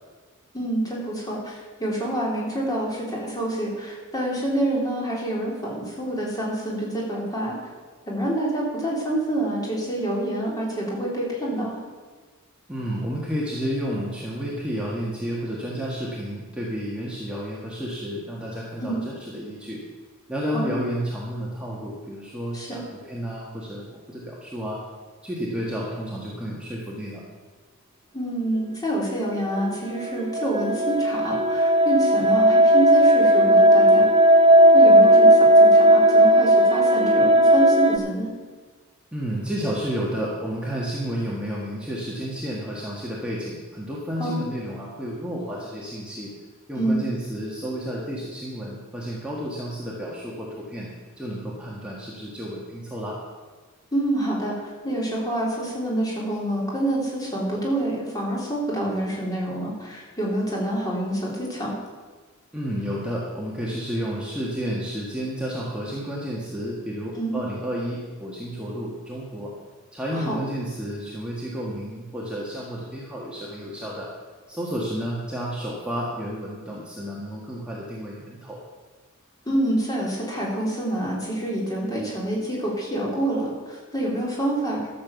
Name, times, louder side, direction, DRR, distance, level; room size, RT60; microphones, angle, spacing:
voice 1, 0.5-7.5 8.1-11.8 18.8-19.0 20.5-20.8 22.5-22.8 28.1-34.1 34.7-38.3 44.2-44.5 46.8-47.0 53.9-54.5 54.8-61.8 67.2-67.4 70.1-70.4 79.4-84.9, right 1 dB, 20° left, -4 dB, 3.3 m, -27 dB
voice 2, 12.7-19.8 20.3-22.8 23.1-24.8 25.2-27.2 39.1-46.3 46.7-50.9 51.2-53.2 62.5-69.5 69.9-74.1 74.5-78.6, equal, 5° right, -5 dB, 1.7 m, -31 dB
sound 1, 29.6-38.0, right 1 dB, 25° right, 0.6 m, -15 dB
13.0 x 6.9 x 7.0 m, 1.4 s
head